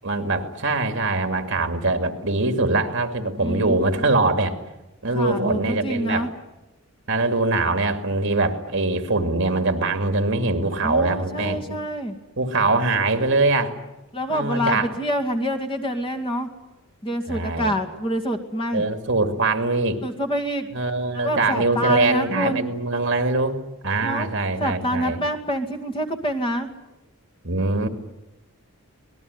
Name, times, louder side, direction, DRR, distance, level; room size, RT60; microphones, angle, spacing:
voice 1, 0.0-4.6 5.0-6.3 7.1-11.8 12.4-13.7 14.3-14.9 17.3-17.7 18.7-20.0 20.7-25.2 27.4-27.9, right 2 dB, 60° right, 6 dB, 2.4 m, -23 dB
voice 2, 3.4-4.1 5.1-6.3 10.8-12.2 14.1-16.5 17.0-18.8 20.0-20.7 21.1-22.7 24.0-24.3 24.6-26.7, equal, 25° left, 6 dB, 2.3 m, -26 dB
26.0 x 19.5 x 9.7 m, 0.99 s
head